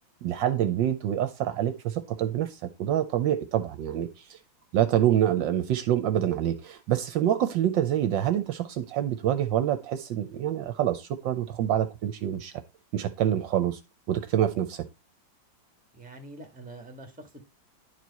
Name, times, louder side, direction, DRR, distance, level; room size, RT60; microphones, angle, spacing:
voice 1, 0.2-4.4 4.7-12.5 12.9-13.8 14.1-14.8, right 11 dB, 70° right, 1.3 m, -26 dB
voice 2, 15.9-17.4, right 2 dB, 5° right, 1.2 m, -45 dB
10.5 x 4.6 x 4.1 m
omnidirectional pair, 2.2 m